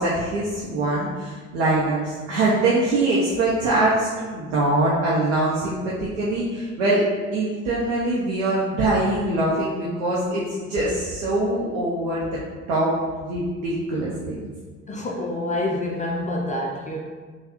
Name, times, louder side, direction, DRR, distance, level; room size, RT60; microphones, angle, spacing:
voice 1, 0.0-7.0 7.3-12.4 12.7-12.9 13.2-14.4, right 2 dB, 80° right, -6 dB, 0.6 m, -23 dB
voice 2, 14.9-17.0, left 1 dB, 20° left, -2 dB, 0.5 m, -27 dB
3.3 x 2.2 x 2.9 m, 1.5 s
hypercardioid pair, 55°, 35 cm